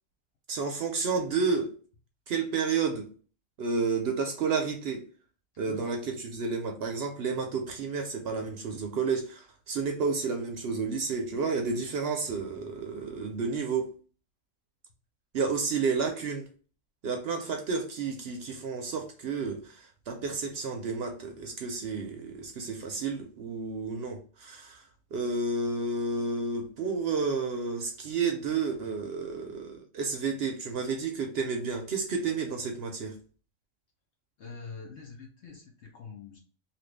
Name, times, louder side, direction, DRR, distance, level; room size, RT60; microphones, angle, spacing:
voice 1, 0.5-1.7 2.3-3.1 3.6-5.0 5.6-13.9 15.3-16.5 17.0-24.8 25.1-33.2, right 4 dB, 65° right, 0.7 m, -31 dB
voice 2, 34.4-36.4, left 5 dB, 65° left, 0.9 m, -45 dB
2.8 x 2.5 x 3.2 m
omnidirectional pair, 1.4 m